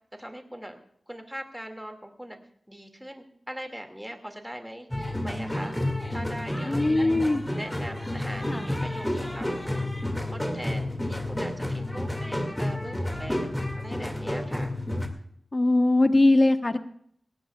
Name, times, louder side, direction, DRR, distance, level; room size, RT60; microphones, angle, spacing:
voice 1, 0.2-0.8 1.1-2.4 2.7-5.8 6.1-7.2 7.6-14.8, equal, 5° right, 5 dB, 2.1 m, -41 dB
sound 1, 4.9-15.1, left 1 dB, 10° left, 2.1 m, -30 dB
voice 2, 6.6-7.4 8.5-8.7 15.5-16.8, left 2 dB, 30° left, 8 dB, 1.0 m, -21 dB
19.0 x 17.0 x 2.3 m, 0.66 s
wide cardioid pair, 80°, 0 cm